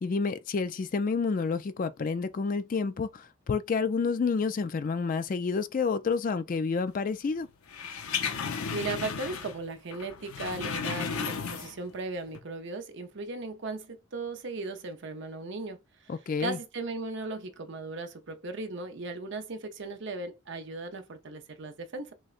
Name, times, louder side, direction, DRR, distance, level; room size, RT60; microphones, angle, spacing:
voice 1, 0.0-7.5 16.1-16.6, left 5 dB, 40° left, 0.3 m, -29 dB
sound 1, 7.7-9.7 9.9-11.9 12.3-12.4, left 6 dB, 80° left, 0.7 m, -34 dB
voice 2, 8.7-15.8 16.0-16.1 16.4-22.1, right 3 dB, 55° right, 0.6 m, -37 dB
6.2 x 2.2 x 2.4 m
head